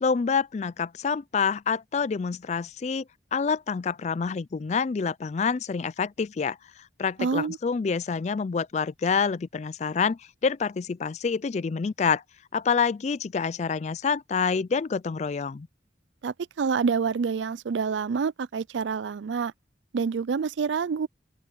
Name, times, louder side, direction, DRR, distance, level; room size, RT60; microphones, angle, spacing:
voice 1, 0.0-3.0 3.3-6.6 7.0-12.2 12.5-15.7, left 5 dB, 40° left, 0.3 m, -27 dB
voice 2, 7.2-7.6 16.2-19.5 19.9-21.1, right 5 dB, 85° right, 0.4 m, -27 dB
open air
head